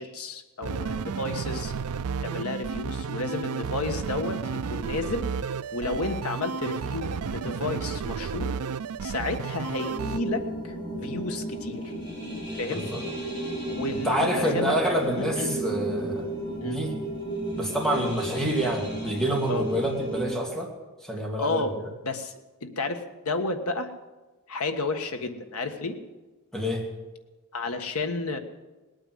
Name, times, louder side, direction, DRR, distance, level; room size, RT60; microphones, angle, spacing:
voice 1, 0.0-1.7 2.2-8.6 9.0-11.9 12.6-12.8 13.7-14.7 15.2-15.6 16.6-16.8 17.9-18.1 19.5-19.6 21.3-21.7 22.0-22.3 22.6-23.9 24.5-26.0 27.5-28.4, left 3 dB, 80° left, 6 dB, 1.5 m, -32 dB
sound 1, 0.6-10.2, right 5 dB, 90° right, 0.5 m, -32 dB
sound 2, 9.8-20.3, right 2 dB, 20° left, 7.2 m, -33 dB
voice 2, 12.7-13.0 14.0-16.3 16.6-16.9 17.6-20.7 21.0-21.6 26.5-26.8, equal, ahead, 0 dB, 2.4 m, -27 dB
19.0 x 9.0 x 7.9 m, 1.2 s
head